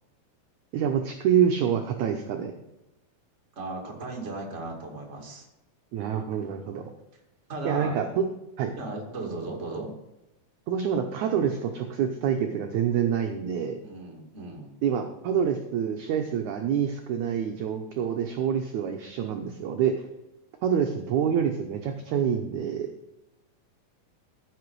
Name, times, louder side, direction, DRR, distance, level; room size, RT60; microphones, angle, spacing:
voice 1, 0.7-2.5 5.9-6.9 7.6-8.2 8.6-8.7 10.7-13.8 14.8-20.1 20.6-22.9, right 8 dB, 75° right, 4 dB, 1.8 m, -26 dB
voice 2, 3.6-5.5 7.5-8.0 8.8-9.9 13.8-14.8, right 2 dB, 25° right, 0 dB, 1.8 m, -36 dB
15.0 x 5.9 x 4.7 m, 0.95 s
omnidirectional pair, 4.3 m